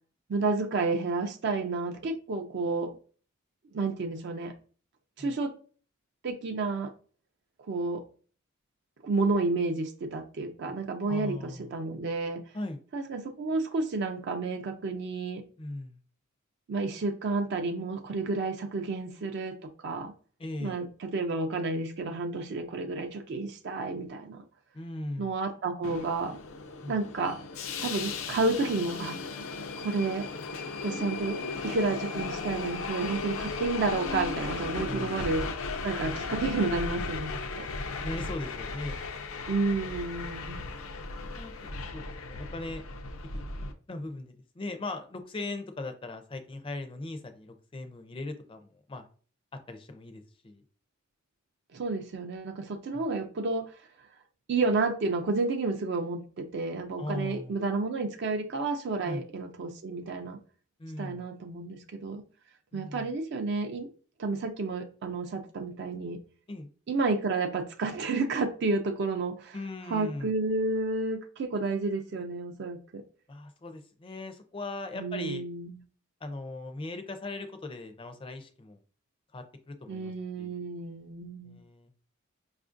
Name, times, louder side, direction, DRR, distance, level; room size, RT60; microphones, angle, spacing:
voice 1, 0.3-2.9 3.7-4.5 5.2-5.5 6.2-6.9 7.7-8.0 9.0-12.4 12.9-15.4 16.7-20.1 20.6-24.4 25.2-26.4 26.9-27.4 27.8-29.2 29.8-30.3 30.8-31.4 31.6-35.4 35.8-37.7 39.5-40.6 51.7-53.7 54.5-60.4 61.0-62.2 62.7-63.9 64.2-66.2 66.9-69.6 69.9-73.0 75.0-75.8 79.9-81.6, right 3 dB, 55° right, 6 dB, 0.4 m, -31 dB
voice 2, 11.1-11.7 12.5-12.8 15.6-16.0 20.4-20.8 24.7-25.4 26.8-27.0 34.8-35.2 38.0-39.0 40.4-40.6 41.4-42.8 43.9-49.1 49.7-50.6 52.9-53.1 57.0-57.6 59.0-59.2 60.8-61.3 62.7-63.1 66.5-66.7 69.5-70.4 73.3-75.4 76.2-78.8 79.3-80.7 81.4-81.9, left 2 dB, 25° left, 7 dB, 0.4 m, -39 dB
Subway metro underground, 25.8-43.7, left 4 dB, 80° left, 0.5 m, -36 dB
4.9 x 2.4 x 2.5 m, 0.41 s
head